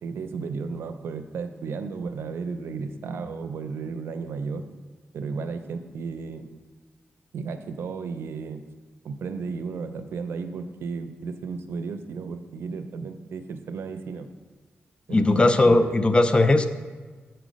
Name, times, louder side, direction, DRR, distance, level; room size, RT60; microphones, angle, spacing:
voice 1, 0.0-4.7 5.1-6.6 7.3-8.6 9.0-14.3 15.1-16.0, right 5 dB, 80° right, 9 dB, 0.5 m, -34 dB
voice 2, 15.1-16.7, left 2 dB, 25° left, 10 dB, 0.4 m, -18 dB
7.1 x 4.5 x 5.1 m, 1.4 s
cardioid pair, 80°, 4 cm